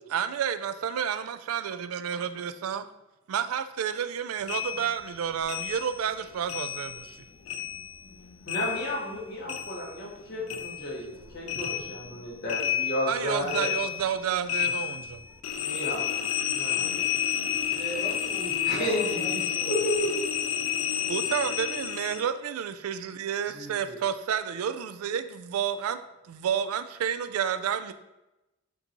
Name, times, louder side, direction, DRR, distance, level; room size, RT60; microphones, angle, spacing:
voice 1, 0.1-2.8 3.3-7.2 13.1-15.2 21.1-26.0 26.3-27.9, right 8 dB, 85° right, 11 dB, 0.3 m, -30 dB
sound 1, 4.5-7.2 7.5-10.2 10.5-22.3, left 9 dB, 70° left, 0.4 m, -31 dB
voice 2, 8.4-13.7 15.6-16.3 16.5-17.1 18.6-19.4 19.7-20.1, equal, 50° left, -4 dB, 1.4 m, -32 dB
voice 3, 17.7-20.0 23.4-24.0, right 1 dB, 15° right, -8 dB, 1.1 m, -39 dB
6.5 x 2.7 x 2.9 m, 0.96 s
head